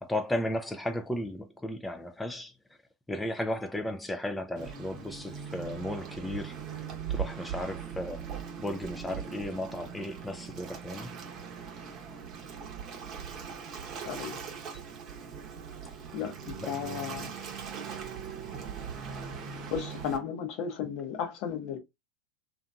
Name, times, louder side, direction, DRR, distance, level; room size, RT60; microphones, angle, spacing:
voice 1, 0.0-2.5 3.1-11.1 16.6-16.7, left 1 dB, 10° left, 0.4 m, -35 dB
Waves surf, 4.6-20.2, right 7 dB, 45° right, 0.8 m, -40 dB
voice 2, 14.0-14.4 16.1-17.3 19.3-19.4 19.7-21.8, left 7 dB, 55° left, 0.8 m, -34 dB
2.7 x 2.4 x 2.3 m
hypercardioid pair, 90°, 0 cm